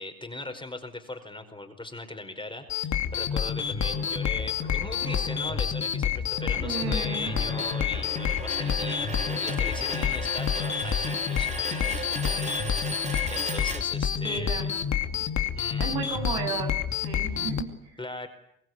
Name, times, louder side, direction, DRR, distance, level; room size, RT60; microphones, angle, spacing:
voice 1, 0.0-12.9 13.3-14.7 15.5-16.0 18.0-18.3, left 2 dB, 10° left, 6 dB, 4.9 m, -39 dB
sound 1, 2.7-17.6, left 8 dB, 45° left, 2.6 m, -28 dB
sound 2, 3.8-14.4, right 1 dB, 15° right, 4.4 m, -37 dB
voice 2, 6.5-7.4 14.2-14.8 15.1-15.2 15.8-18.0, right 5 dB, 65° right, 3 dB, 7.5 m, -34 dB
24.5 x 21.0 x 9.5 m, 0.78 s
hypercardioid pair, 60°, 40 cm